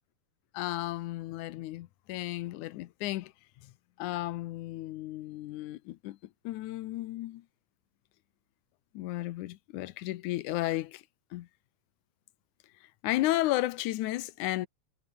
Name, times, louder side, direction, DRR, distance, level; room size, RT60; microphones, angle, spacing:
voice 1, 0.5-3.3 3.6-3.7 4.0-6.2 6.4-7.4 8.9-11.0 11.3-11.5 13.0-14.7, left 16 dB, 75° left, 2.2 m, -33 dB
omnidirectional pair, 3.6 m